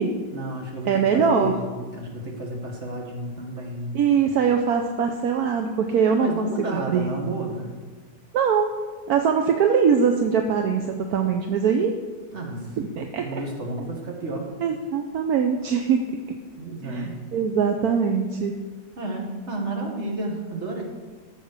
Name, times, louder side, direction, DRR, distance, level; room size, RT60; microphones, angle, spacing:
voice 1, 0.3-4.0 6.1-7.7 12.3-12.8 13.2-14.5 16.6-17.2 19.0-20.8, right 2 dB, 45° right, 1 dB, 2.1 m, -31 dB
voice 2, 0.9-1.6 3.9-7.1 8.3-8.7 9.1-11.9 12.8-13.4 14.6-16.4 16.8-18.6, right 6 dB, 75° right, 5 dB, 1.2 m, -22 dB
13.0 x 6.4 x 6.7 m, 1.4 s
omnidirectional pair, 1.7 m